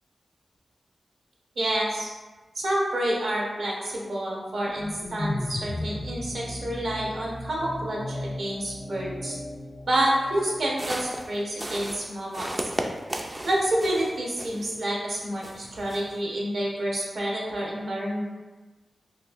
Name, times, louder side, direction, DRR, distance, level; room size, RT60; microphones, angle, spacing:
voice 1, 1.6-2.1 2.5-9.4 9.8-12.5 13.4-18.2, right 1 dB, 75° right, -3 dB, 0.9 m, -28 dB
sound 1, 4.5-10.8, left 1 dB, 50° left, 0.4 m, -36 dB
sound 2, 10.6-14.8 15.2-16.2, right 1 dB, 30° right, 0.3 m, -35 dB
3.9 x 2.4 x 2.5 m, 1.2 s
cardioid pair, 55°, 0 cm